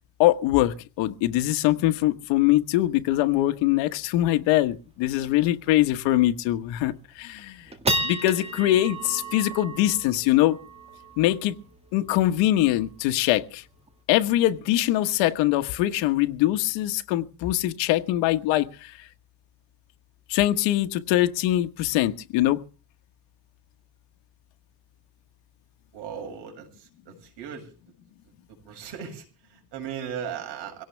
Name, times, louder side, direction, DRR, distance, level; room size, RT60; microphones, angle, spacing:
voice 1, 0.2-7.7 8.0-10.6 11.2-11.5 11.9-13.6 14.1-19.0 20.3-22.6, left 14 dB, 90° left, 9 dB, 1.5 m, -23 dB
sound 1, 4.3-4.4 4.7-4.8 5.2-5.5 5.9-6.0 6.6-6.9 7.4-14.0, right 1 dB, 15° right, 1.9 m, -34 dB
voice 2, 25.9-27.7 28.7-30.8, right 8 dB, 70° right, 3 dB, 7.4 m, -37 dB
22.5 x 17.5 x 3.4 m, 0.36 s
cardioid pair, 150°, 42 cm